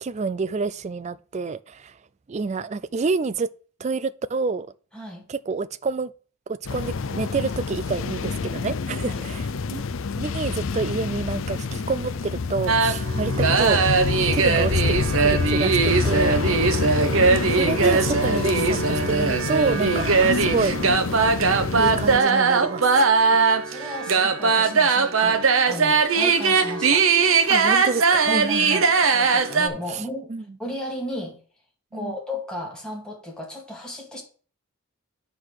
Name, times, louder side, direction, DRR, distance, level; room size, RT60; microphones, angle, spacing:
voice 1, 0.0-2.0 2.3-3.5 3.8-4.7 5.3-6.1 6.5-9.8 10.2-13.8 14.3-16.4 16.8-16.9 17.5-20.8 21.8-23.4 27.5-28.8 29.9-30.0 30.3-30.4 31.9-32.2, right 4 dB, 30° right, 0.3 m, -28 dB
voice 2, 4.9-5.3 9.0-9.2 16.5-16.8 23.3-25.4 25.7-27.1 28.3-30.3 30.6-31.4 31.9-34.2, left 1 dB, 5° left, 2.0 m, -35 dB
sound 1, 6.7-22.2, left 4 dB, 60° left, 0.5 m, -27 dB
sound 2, 12.7-29.7, right 4 dB, 65° right, 0.8 m, -20 dB
9.7 x 3.8 x 6.5 m
head